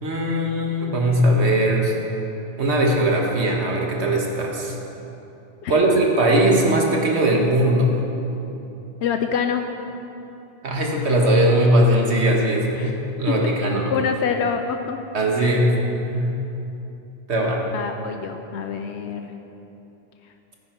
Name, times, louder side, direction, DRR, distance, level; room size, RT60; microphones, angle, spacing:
voice 1, 0.0-1.9 2.6-4.7 5.7-7.9 10.6-12.9 13.2-13.9 15.1-15.8 16.0-16.4 17.3-17.6, right 1 dB, 80° right, 0 dB, 1.8 m, -19 dB
voice 2, 5.6-6.0 9.0-9.6 12.7-12.9 13.9-15.0 15.4-15.6 17.7-19.3, left 6 dB, 85° left, 6 dB, 0.9 m, -26 dB
15.0 x 9.7 x 4.5 m, 3.0 s
omnidirectional pair, 1.1 m